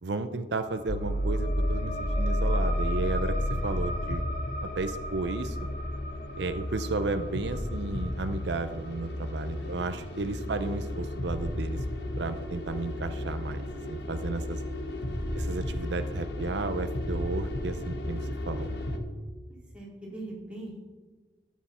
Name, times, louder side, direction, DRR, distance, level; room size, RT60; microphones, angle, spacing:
voice 1, 0.0-4.3 4.6-5.6 6.4-11.8 12.2-14.6 15.4-18.7, right 3 dB, 80° right, 10 dB, 0.6 m, -33 dB
sound 1, 0.6-11.8, equal, 45° left, 0.9 m, -40 dB
sound 2, 0.9-19.0, left 1 dB, 80° left, 1.3 m, -32 dB
voice 2, 19.7-20.8, right 2 dB, 5° right, -6 dB, 3.4 m, -41 dB
13.5 x 9.3 x 4.3 m, 1.4 s
head